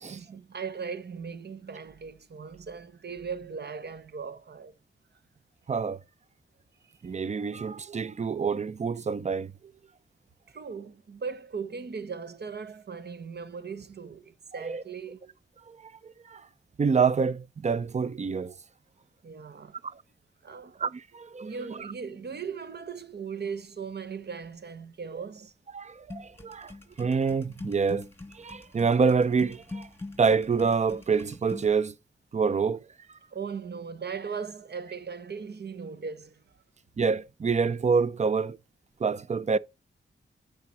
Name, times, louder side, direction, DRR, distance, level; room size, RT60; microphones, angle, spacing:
voice 1, 0.1-4.7 6.8-6.9 10.5-15.3 19.2-19.8 20.4-20.8 21.4-25.5 33.3-36.4, right 5 dB, 55° right, 0.9 m, -38 dB
voice 2, 5.7-6.0 7.0-9.5 14.6-14.8 15.7-16.4 16.8-18.5 20.8-21.5 21.8-21.9 25.1-25.2 25.7-26.7 27.0-28.1 28.3-29.9 30.2-31.9 32.3-32.8 37.0-38.6 39.0-39.6, right 5 dB, 35° right, 0.5 m, -27 dB
sound 1, 26.1-31.7, left 2 dB, 10° left, 2.7 m, -43 dB
9.2 x 4.9 x 4.2 m
cardioid pair, 65°, 20 cm